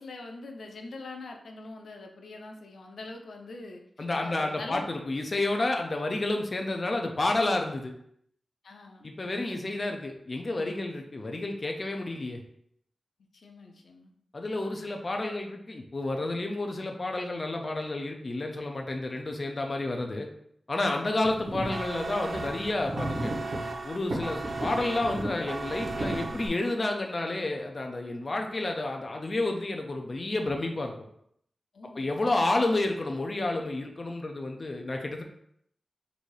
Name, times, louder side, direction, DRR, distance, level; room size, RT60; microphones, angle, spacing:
voice 1, 0.0-4.9 8.6-9.1 10.9-11.0 13.3-14.1 31.7-32.1, left 2 dB, 90° left, 3 dB, 0.6 m, -44 dB
voice 2, 4.0-7.9 9.0-12.4 14.3-20.3 20.7-23.3 23.8-30.9 31.9-35.2, left 2 dB, 35° left, 2 dB, 0.6 m, -30 dB
sound 1, 21.2-21.7 22.3-23.6 24.1-25.3 25.6-26.5, right 1 dB, 75° right, 1.4 m, -34 dB
sound 2, 21.7-27.0, right 3 dB, 45° right, 0.4 m, -37 dB
4.0 x 2.6 x 4.8 m, 0.70 s
wide cardioid pair, 125°, 0 cm